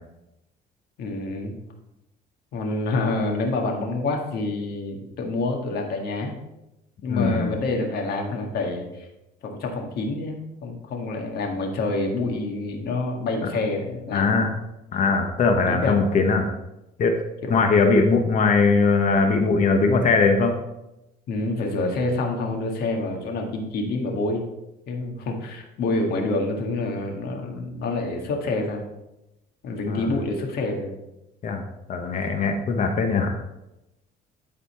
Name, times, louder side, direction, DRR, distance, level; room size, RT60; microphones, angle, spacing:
voice 1, 1.0-1.6 2.5-6.3 7.0-9.1 9.4-14.4 15.7-16.0 17.4-17.6 21.3-24.4 24.9-28.8 29.6-31.0, left 2 dB, 70° left, 2 dB, 1.7 m, -27 dB
voice 2, 7.1-7.5 14.1-14.5 14.9-16.5 17.0-17.1 17.5-20.5 29.9-30.1 31.4-31.6 31.9-33.3, left 4 dB, 50° left, 4 dB, 1.0 m, -20 dB
11.5 x 4.1 x 4.3 m, 0.92 s
cardioid pair, 110°, 17 cm